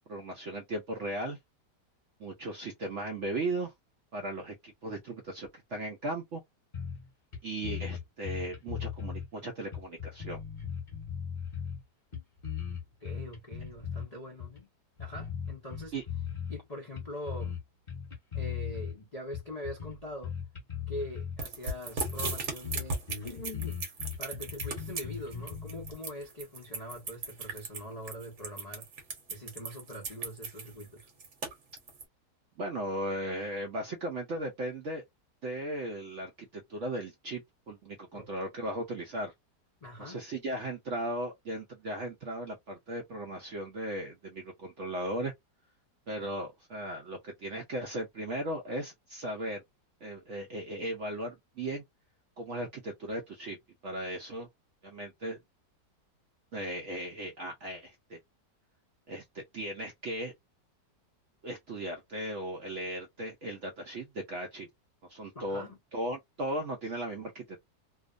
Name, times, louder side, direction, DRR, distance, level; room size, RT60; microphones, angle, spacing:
voice 1, 0.1-1.4 2.2-3.7 4.1-6.4 7.4-10.4 15.9-16.0 32.6-35.0 35.4-39.3 40.0-45.3 46.1-49.6 50.0-51.8 52.4-53.6 53.8-54.5 54.8-55.4 56.5-58.2 59.1-60.3 61.4-64.7 65.1-67.6, right 1 dB, 70° right, 0.7 m, -37 dB
sound 1, 6.7-7.1 7.3-7.4 7.6-9.3 9.7-11.8 12.1-14.1 14.4-14.6 15.0-16.6 17.0-17.6 17.9-18.9 19.3-21.4 21.7-21.8 22.0-22.4 22.6-25.9, left 8 dB, 30° left, 1.1 m, -38 dB
voice 2, 13.0-14.7 15.0-15.9 16.5-17.6 18.3-20.3 20.9-23.8 24.2-28.9 29.3-31.1 38.1-38.3 39.8-40.2 65.3-65.8, left 1 dB, 60° left, 0.4 m, -43 dB
sound 2, 21.4-32.0, right 3 dB, 50° right, 1.0 m, -37 dB
2.8 x 2.0 x 2.4 m
omnidirectional pair, 1.9 m